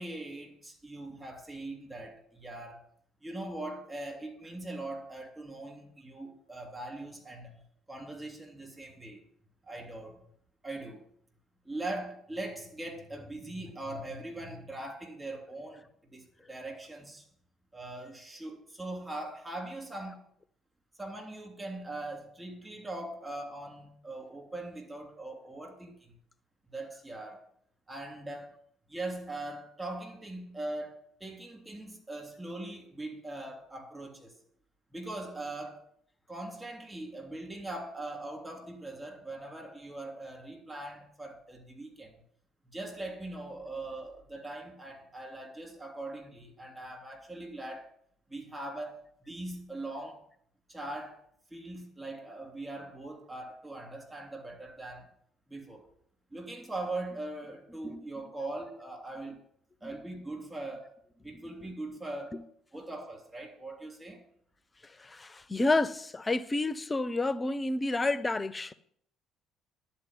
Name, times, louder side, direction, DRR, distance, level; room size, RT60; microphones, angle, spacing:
voice 1, 0.0-2.9 3.2-7.5 7.9-9.2 9.7-10.2 10.6-11.0 11.6-15.8 16.1-17.2 17.7-20.2 21.0-26.1 26.7-27.4 27.9-28.5 28.9-34.3 34.9-35.8 36.3-42.1 42.7-47.9 48.3-50.2 50.7-51.2 51.5-55.1 55.5-55.9 56.3-59.4 59.8-60.9 61.2-62.3 62.7-64.2, right 2 dB, 15° right, 3.0 m, -41 dB
voice 2, 64.8-68.7, left 2 dB, 25° left, 0.5 m, -30 dB
11.0 x 4.4 x 7.8 m
hypercardioid pair, 55°, 0 cm